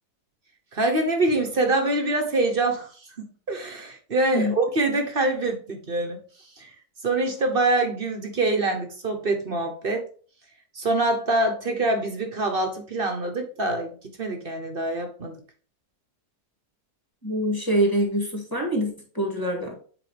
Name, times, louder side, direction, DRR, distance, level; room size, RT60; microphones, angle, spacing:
voice 1, 0.7-2.9 3.2-6.2 6.6-6.7 7.0-10.1 10.7-15.4, right 2 dB, 40° right, 4 dB, 1.0 m, -25 dB
voice 2, 17.2-19.7, equal, 15° left, 0 dB, 1.9 m, -25 dB
8.1 x 4.6 x 3.3 m, 0.42 s
omnidirectional pair, 1.7 m